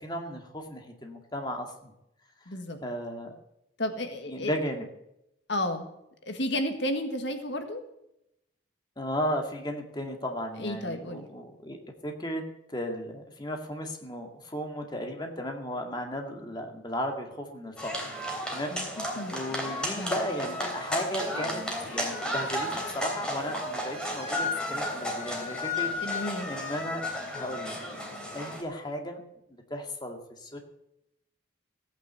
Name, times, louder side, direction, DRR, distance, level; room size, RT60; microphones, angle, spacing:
voice 1, 0.0-1.9 2.8-3.3 4.3-4.9 9.0-11.8 12.0-12.4 12.7-17.9 18.5-22.7 22.9-25.9 26.5-27.0 27.3-27.7 28.0-29.2 29.7-30.6, equal, 20° left, 3 dB, 2.1 m, -35 dB
voice 2, 2.5-2.8 3.8-4.5 5.5-5.9 6.3-7.8 10.6-11.3 18.7-19.6 19.9-20.1 26.0-26.5, left 1 dB, 65° left, 6 dB, 1.7 m, -32 dB
sound 1, 17.8-28.6, left 1 dB, 5° left, 3.3 m, -33 dB
16.5 x 9.3 x 8.1 m, 0.82 s
head